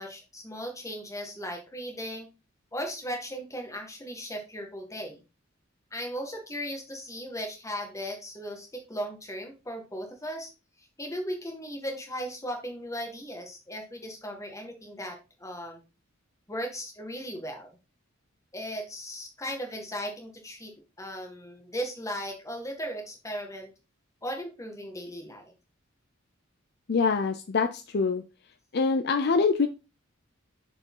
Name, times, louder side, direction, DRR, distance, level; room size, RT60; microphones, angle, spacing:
voice 1, 0.0-2.3 2.7-5.2 5.9-10.5 10.8-15.8 16.5-17.8 18.5-23.7 24.2-25.5, equal, 15° left, 2 dB, 1.8 m, -37 dB
voice 2, 26.9-28.2 28.7-29.7, left 4 dB, 55° left, 8 dB, 0.5 m, -24 dB
6.7 x 5.0 x 3.8 m, 0.30 s
head